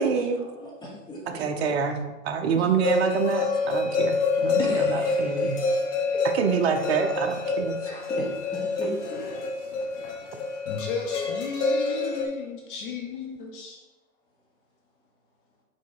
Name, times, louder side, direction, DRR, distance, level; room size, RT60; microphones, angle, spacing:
voice 1, 0.0-0.4 1.3-2.0 2.2-5.6 6.2-7.8, right 6 dB, 45° right, 6 dB, 0.8 m, -26 dB
voice 2, 0.5-1.6 2.5-2.6 4.6-5.6 6.1-6.3 7.8-9.2, left 1 dB, 10° left, -5 dB, 1.2 m, -36 dB
sound 1, 2.8-12.3, left 3 dB, 55° left, 1.6 m, -27 dB
voice 3, 10.6-13.8, left 5 dB, 35° left, 1 dB, 0.9 m, -34 dB
5.6 x 4.0 x 4.7 m, 1.2 s
hypercardioid pair, 135°, 43 cm